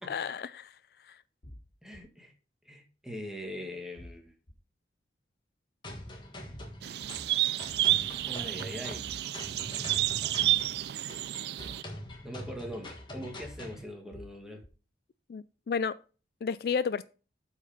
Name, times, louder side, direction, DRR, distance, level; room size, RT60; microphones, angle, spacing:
voice 1, 0.1-0.7 1.1-1.2 15.3-16.0 16.4-17.0, left 6 dB, 55° left, 0.3 m, -32 dB
sound 1, 1.4-2.0 4.0-4.5 6.5-7.1 9.0-9.6 11.6-12.2 14.1-14.7, left 1 dB, 90° left, 2.1 m, -49 dB
voice 2, 1.8-2.3 2.6-4.3 8.2-9.1 12.2-14.7, equal, 5° right, 1.6 m, -42 dB
sound 2, 5.8-13.8, left 1 dB, 25° left, 1.5 m, -44 dB
sound 3, 6.8-11.8, right 14 dB, 65° right, 0.3 m, -30 dB
8.3 x 5.0 x 5.2 m
head